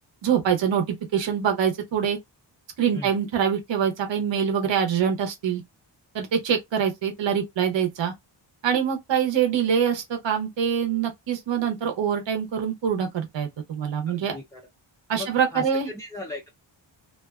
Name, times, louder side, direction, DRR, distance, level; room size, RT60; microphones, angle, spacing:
voice 1, 0.2-2.2 2.8-5.6 6.1-8.1 8.6-14.4 15.1-15.9, right 8 dB, 65° right, 0.8 m, -24 dB
voice 2, 14.1-14.6 15.1-16.5, left 2 dB, 5° left, 0.3 m, -38 dB
2.4 x 2.2 x 2.3 m
wide cardioid pair, 90°, 48 cm